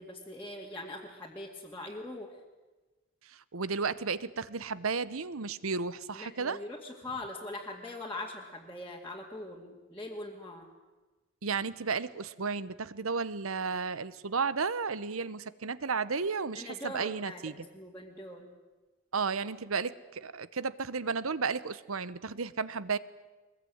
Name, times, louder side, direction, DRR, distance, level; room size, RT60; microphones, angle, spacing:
voice 1, 0.0-2.4 6.1-10.7 16.5-18.5, left 1 dB, 10° left, -4 dB, 2.3 m, -42 dB
voice 2, 3.3-6.6 11.4-17.7 19.1-23.0, right 5 dB, 85° right, 17 dB, 1.0 m, -33 dB
23.0 x 21.5 x 9.5 m, 1.2 s
head